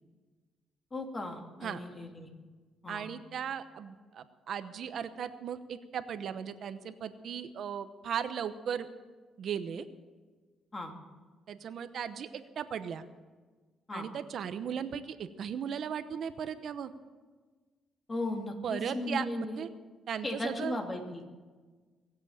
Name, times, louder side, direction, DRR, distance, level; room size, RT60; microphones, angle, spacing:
voice 1, 0.9-2.3 2.8-3.1 10.7-10.9 13.9-14.1 18.1-19.6 20.2-21.2, left 2 dB, 30° left, 3 dB, 2.7 m, -36 dB
voice 2, 2.9-8.9 9.4-9.9 11.5-13.0 13.9-16.9 18.6-19.7 20.1-20.7, right 8 dB, 65° right, 11 dB, 0.9 m, -37 dB
23.5 x 8.2 x 7.3 m, 1.4 s
cardioid pair, 90°, 0 cm